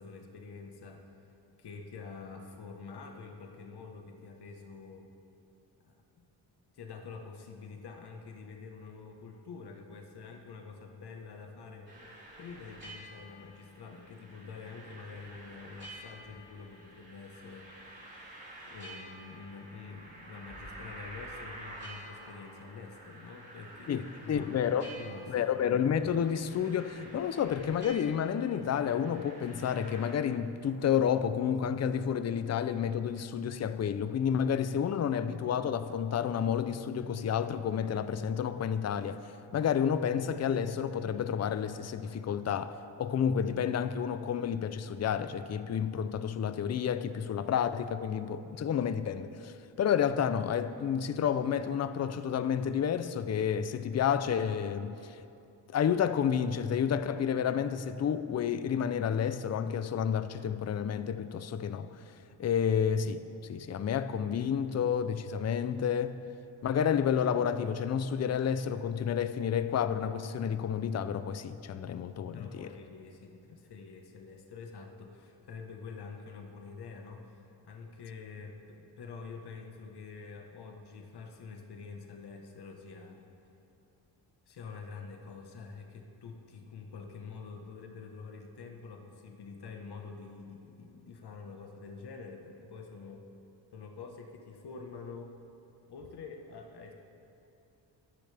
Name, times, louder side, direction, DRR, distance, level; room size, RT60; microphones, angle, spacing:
voice 1, 0.0-5.1 5.8-6.2 6.7-12.1 12.4-18.2 18.6-24.6 25.0-25.8 72.3-83.3 84.5-93.3 93.7-95.4 95.9-96.9, left 4 dB, 60° left, 1.4 m, -47 dB
sound 1, 11.9-30.1, right 1 dB, 25° right, 4.0 m, -49 dB
voice 2, 24.3-24.9 25.3-39.2 39.5-55.2 55.7-61.9 62.4-66.2 66.6-72.7, left 8 dB, 35° left, 0.6 m, -30 dB
24.0 x 10.0 x 3.5 m
cardioid pair, 105°, 44 cm